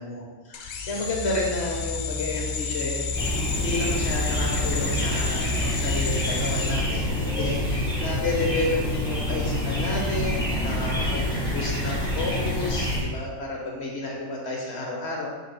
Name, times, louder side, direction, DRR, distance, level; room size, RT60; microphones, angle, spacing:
voice 1, 0.0-15.3, left 2 dB, 50° left, -1 dB, 1.4 m, -31 dB
sound 1, 0.5-7.6, left 4 dB, 70° left, 0.4 m, -31 dB
sound 2, 3.1-13.0, left 1 dB, 5° left, 1.8 m, -27 dB
6.8 x 3.4 x 4.4 m, 1.3 s
omnidirectional pair, 1.5 m